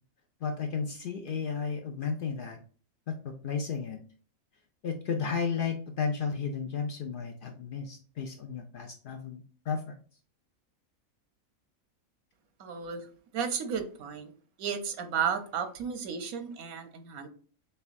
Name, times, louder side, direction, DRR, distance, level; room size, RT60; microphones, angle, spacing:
voice 1, 0.4-2.6 3.1-4.0 4.8-10.0, left 5 dB, 75° left, 5 dB, 0.5 m, -33 dB
voice 2, 12.6-13.1 13.3-14.3 14.6-17.3, right 7 dB, 90° right, 8 dB, 1.2 m, -33 dB
6.6 x 2.3 x 2.5 m, 0.42 s
omnidirectional pair, 1.4 m